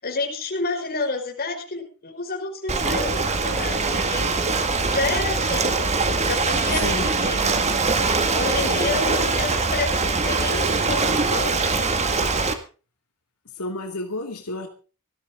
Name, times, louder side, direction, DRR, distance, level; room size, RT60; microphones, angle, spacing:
voice 1, 0.0-4.5 4.9-5.8 6.3-7.5 8.3-11.9, left 3 dB, 45° left, 2 dB, 5.4 m, -30 dB
Ocean, 2.7-12.5, right 3 dB, 30° right, 2.0 m, -22 dB
voice 2, 6.7-7.1 8.7-9.0 13.6-14.7, left 2 dB, 85° left, 2 dB, 2.6 m, -31 dB
19.5 x 14.0 x 3.8 m, 0.36 s
head